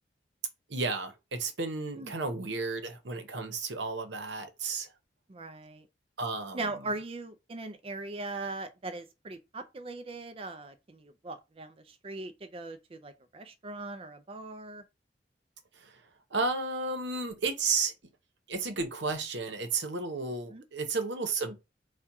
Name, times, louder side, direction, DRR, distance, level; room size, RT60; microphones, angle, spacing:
voice 1, 0.7-4.9 6.2-6.7 15.8-15.9 16.3-17.9 18.5-21.6, right 4 dB, 80° right, 0.9 m, -33 dB
voice 2, 5.3-5.9 6.5-14.8 20.5-20.6, right 2 dB, 35° right, 0.4 m, -40 dB
4.3 x 2.3 x 4.6 m
head